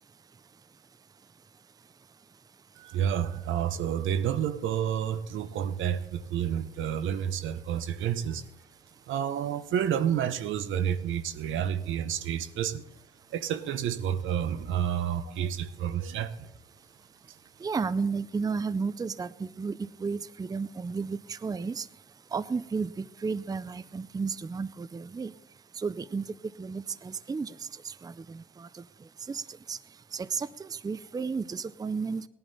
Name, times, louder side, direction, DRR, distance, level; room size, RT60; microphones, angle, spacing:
voice 1, 2.8-8.5 9.1-12.9 13.3-16.5 17.3-17.4, right 9 dB, 80° right, 0.9 m, -30 dB
voice 2, 17.6-21.9 22.3-25.3 25.8-26.3 26.6-27.5 27.8-28.7 29.3-29.4 29.7-29.8 30.1-32.2, right 5 dB, 20° right, 0.5 m, -33 dB
17.0 x 11.0 x 4.1 m
cardioid pair, 90°, 20 cm